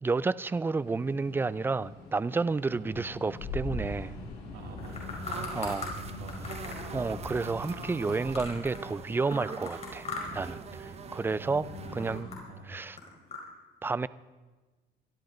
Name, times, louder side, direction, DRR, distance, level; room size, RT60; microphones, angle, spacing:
voice 1, 0.0-4.1 5.5-5.8 6.9-10.1 10.3-12.3 12.7-13.0 13.8-14.1, right 4 dB, 15° right, 18 dB, 0.4 m, -31 dB
sound 1, 0.8-12.3, left 3 dB, 70° left, 6.3 m, -43 dB
voice 2, 4.5-6.5 11.4-11.9 12.5-12.7, right 3 dB, 75° right, 1 dB, 3.3 m, -45 dB
sound 2, 4.6-5.9 6.3-8.9 9.2-10.5 10.8-11.3 11.6-13.4, left 4 dB, 40° left, 4.8 m, -40 dB
sound 3, 4.8-12.2, right 6 dB, 40° right, 1.0 m, -44 dB
22.0 x 13.0 x 3.9 m, 1.2 s
cardioid pair, 110°, 17 cm